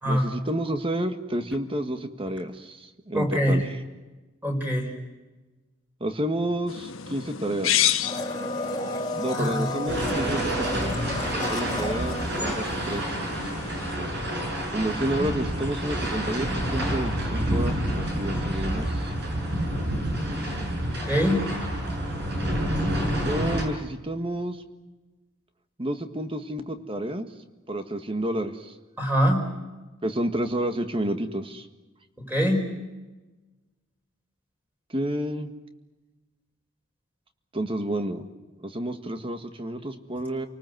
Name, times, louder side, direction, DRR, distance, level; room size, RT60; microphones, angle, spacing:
voice 1, 0.1-3.6 6.0-8.0 9.1-11.0 11.3-13.2 14.7-19.1 23.3-24.6 25.8-27.3 27.7-28.7 30.0-31.7 34.9-35.5 37.5-40.5, right 1 dB, 25° right, 8 dB, 1.7 m, -30 dB
voice 2, 3.1-3.6 4.4-4.9 9.3-9.6 21.0-21.4 29.0-29.4 32.3-32.6, equal, 10° right, 2 dB, 4.9 m, -23 dB
sound 1, 6.7-14.0, left 10 dB, 70° left, 1.3 m, -32 dB
Domestic sounds home sounds, 8.0-13.3 13.5-13.6, left 1 dB, 20° left, 2.4 m, -32 dB
sound 2, 9.9-23.6, right 1 dB, 55° right, 6.8 m, -28 dB
30.0 x 19.5 x 7.9 m, 1.2 s
head